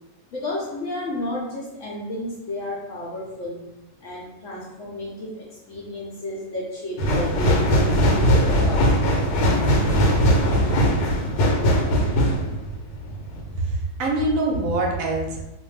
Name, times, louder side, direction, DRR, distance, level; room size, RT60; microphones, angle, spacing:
voice 1, 0.3-3.7 4.0-8.9, left 1 dB, 65° left, -5 dB, 0.8 m, -32 dB
sound 1, 7.0-13.5 14.0-14.1, equal, 80° left, 1.1 m, -20 dB
voice 2, 13.5-15.4, right 2 dB, 70° right, 0 dB, 0.9 m, -24 dB
2.5 x 2.2 x 3.1 m, 0.92 s
omnidirectional pair, 1.7 m